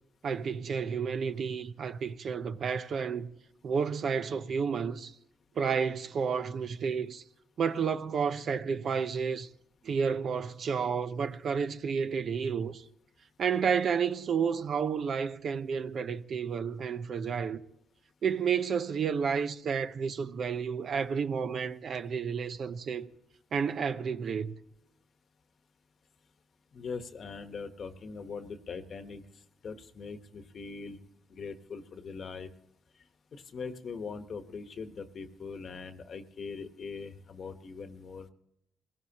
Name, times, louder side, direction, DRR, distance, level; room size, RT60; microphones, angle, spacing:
voice 1, 0.2-3.3 3.6-5.1 5.6-7.2 7.6-9.5 9.8-12.8 13.4-17.6 18.2-23.1 23.5-24.5, right 6 dB, 55° right, 0.7 m, -31 dB
voice 2, 26.7-29.2 29.6-31.0 31.3-32.5 33.3-38.3, left 5 dB, 50° left, 1.2 m, -41 dB
21.5 x 17.0 x 2.9 m
cardioid pair, 90°, 0 cm